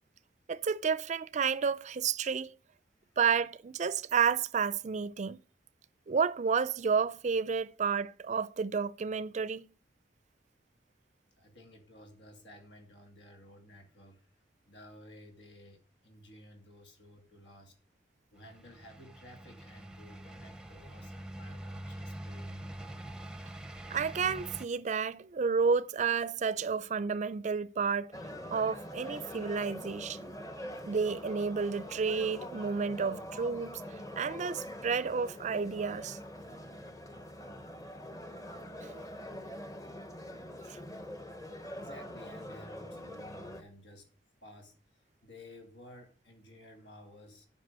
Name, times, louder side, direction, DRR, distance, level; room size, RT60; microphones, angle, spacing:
voice 1, 0.5-2.5 3.2-5.4 6.1-9.7 23.9-28.1 28.5-30.3 30.9-33.8 34.2-36.2 38.8-39.0 40.7-40.8, right 6 dB, 40° right, 0.4 m, -31 dB
voice 2, 11.4-14.3 14.7-17.7 18.3-22.7 41.8-44.1 44.4-47.5, left 1 dB, 85° left, 2.6 m, -54 dB
sound 1, 18.4-24.7, right 1 dB, 5° right, 0.6 m, -45 dB
sound 2, 28.1-43.6, equal, 20° left, 0.9 m, -44 dB
9.4 x 5.4 x 6.6 m
head